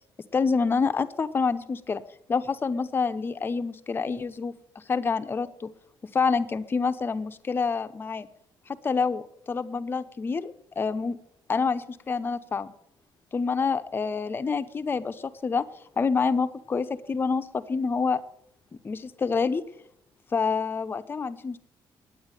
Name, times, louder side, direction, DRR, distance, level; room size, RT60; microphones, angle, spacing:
voice 1, 0.3-2.0 2.3-4.5 4.9-5.7 6.1-8.3 8.7-11.2 11.5-12.7 13.3-15.7 16.0-18.2 18.8-19.6 20.3-21.6, left 5 dB, 25° left, 10 dB, 0.7 m, -27 dB
11.0 x 9.0 x 9.1 m, 0.72 s
cardioid pair, 175°, 9 cm